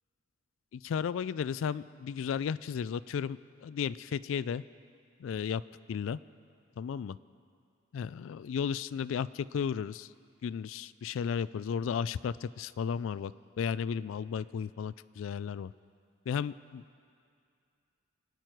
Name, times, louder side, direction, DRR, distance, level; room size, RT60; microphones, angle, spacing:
voice 1, 0.7-4.6 5.2-5.6 5.9-6.2 6.8-7.2 7.9-10.1 10.4-15.7 16.3-16.8, left 7 dB, 75° left, 17 dB, 0.3 m, -34 dB
25.0 x 9.3 x 4.6 m, 2.4 s
head